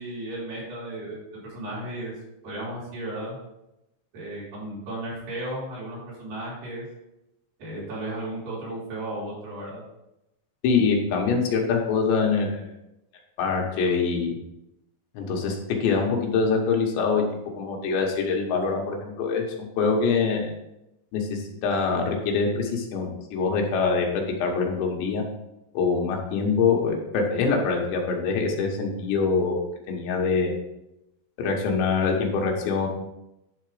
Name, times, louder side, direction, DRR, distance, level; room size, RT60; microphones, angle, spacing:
voice 1, 0.0-2.1 2.4-3.4 4.1-6.8 7.6-9.8, right 1 dB, 60° right, -7 dB, 4.6 m, -34 dB
voice 2, 10.6-12.7 13.4-14.4 15.2-17.3 17.6-19.5 19.8-20.5 21.1-25.2 25.8-30.5 31.4-32.9, left 5 dB, 85° left, 1 dB, 3.5 m, -24 dB
10.5 x 3.8 x 4.9 m, 0.89 s
omnidirectional pair, 4.9 m